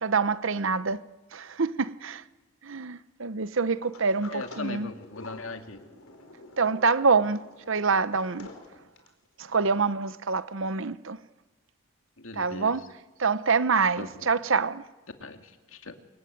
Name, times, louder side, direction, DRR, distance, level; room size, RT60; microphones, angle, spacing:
voice 1, 0.0-1.0 1.3-2.2 2.6-4.9 6.6-7.4 7.7-8.5 9.4-11.2 12.4-12.8 13.2-14.8, right 4 dB, 65° right, 0.8 m, -26 dB
Sliding door, 3.8-9.3, left 2 dB, 85° left, 4.4 m, -49 dB
voice 2, 4.3-5.8 8.4-8.5 12.2-12.8 14.0-14.3 15.2-15.9, left 3 dB, 70° left, 2.4 m, -39 dB
26.0 x 23.0 x 9.5 m
head